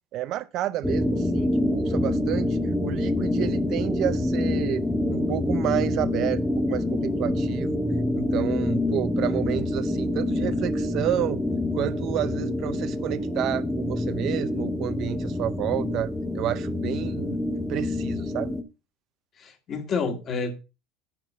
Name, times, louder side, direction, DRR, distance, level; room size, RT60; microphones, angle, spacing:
voice 1, 0.1-6.4 6.7-7.7 8.1-11.4 11.7-17.4 17.7-18.5, right 13 dB, 45° right, 0.6 m, -30 dB
sound 1, 0.8-18.6, left 1 dB, ahead, 0.8 m, -26 dB
voice 2, 19.4-20.6, left 4 dB, 30° left, 1.8 m, -29 dB
10.5 x 3.8 x 7.3 m
cardioid pair, 165°, 0 cm